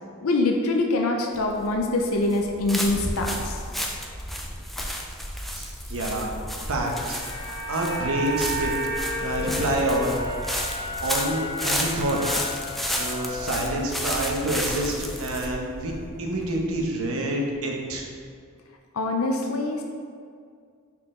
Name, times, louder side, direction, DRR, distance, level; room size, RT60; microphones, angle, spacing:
voice 1, 0.2-3.6 18.9-19.8, left 2 dB, 80° left, 2 dB, 0.6 m, -24 dB
sound 1, 1.3-16.9, equal, ahead, 0.4 m, -32 dB
voice 2, 5.5-6.3 6.6-8.7 9.0-10.2 11.0-12.3 13.0-15.9 16.2-18.1, right 1 dB, 80° right, 0 dB, 1.0 m, -27 dB
sound 2, 6.4-14.7 15.0-15.2, equal, 15° left, 1.0 m, -34 dB
5.9 x 4.4 x 3.8 m, 2.2 s
head